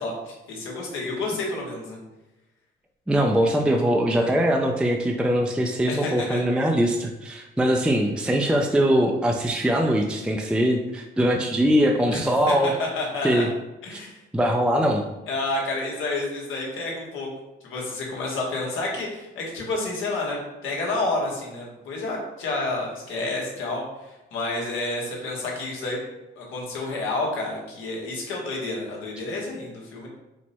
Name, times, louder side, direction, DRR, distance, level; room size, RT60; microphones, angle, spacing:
voice 1, 0.0-2.0 4.1-4.4 5.9-6.4 12.1-13.5 13.8-14.2 15.3-17.3 17.6-26.0 26.3-30.1, left 2 dB, 85° left, -2 dB, 1.2 m, -30 dB
voice 2, 3.1-12.7 13.2-13.5 13.9-14.0 14.3-15.0, equal, 5° right, 2 dB, 0.3 m, -22 dB
4.4 x 2.1 x 4.2 m, 1.0 s
cardioid pair, 90°, 20 cm